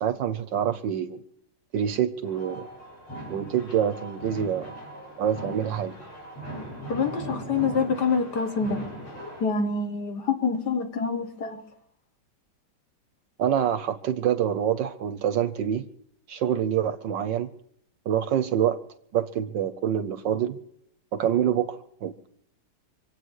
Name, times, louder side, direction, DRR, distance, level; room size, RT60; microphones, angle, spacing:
voice 1, 0.0-1.2 1.7-2.7 3.3-4.7 5.2-5.9 13.4-15.9 16.3-17.5 18.1-18.8 19.1-20.6 21.1-22.3, right 9 dB, 65° right, 1.3 m, -26 dB
sound 1, 2.2-9.4, equal, 70° left, 5.2 m, -39 dB
voice 2, 6.9-8.9 9.4-11.6, left 5 dB, 55° left, 2.0 m, -26 dB
25.5 x 8.7 x 6.4 m
omnidirectional pair, 2.4 m